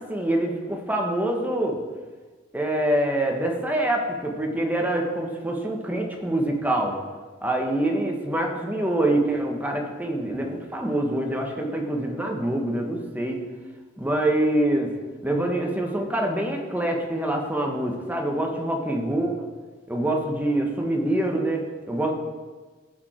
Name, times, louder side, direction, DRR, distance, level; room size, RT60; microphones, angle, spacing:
voice 1, 0.0-1.8 2.5-7.0 7.4-13.4 14.0-14.9 15.2-19.5 19.9-22.1, right 1 dB, 10° right, 1 dB, 1.3 m, -25 dB
15.5 x 5.2 x 4.4 m, 1.4 s
head